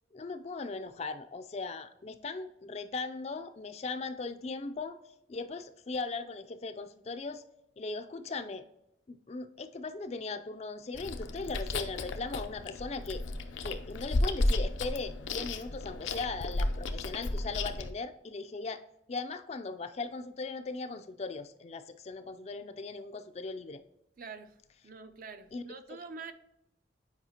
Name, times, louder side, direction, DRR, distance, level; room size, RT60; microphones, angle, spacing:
voice 1, 0.1-5.0 5.3-7.4 7.8-8.6 9.1-13.2 13.6-18.8 19.1-23.8 25.5-25.6 25.9-26.0, left 3 dB, 35° left, 0.4 m, -38 dB
Chewing mastication, 10.9-17.9, left 2 dB, 85° left, 0.6 m, -33 dB
voice 2, 24.2-24.5 24.8-26.3, right 4 dB, 45° right, 0.5 m, -45 dB
8.1 x 4.9 x 2.8 m
head